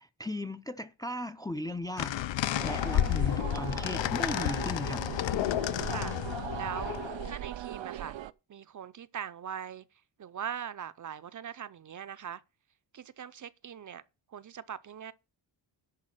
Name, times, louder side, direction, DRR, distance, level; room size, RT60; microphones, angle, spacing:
voice 1, 0.0-5.0, left 1 dB, 10° left, 0.4 m, -37 dB
sound 1, 2.0-7.3, left 12 dB, 80° left, 0.6 m, -31 dB
sound 2, 2.5-8.3, right 12 dB, 85° right, 0.7 m, -40 dB
voice 2, 6.5-8.2 8.5-9.8 10.2-12.4 12.9-14.0 14.3-15.1, right 8 dB, 45° right, 0.6 m, -41 dB
10.5 x 4.7 x 7.7 m
wide cardioid pair, 155°, 44 cm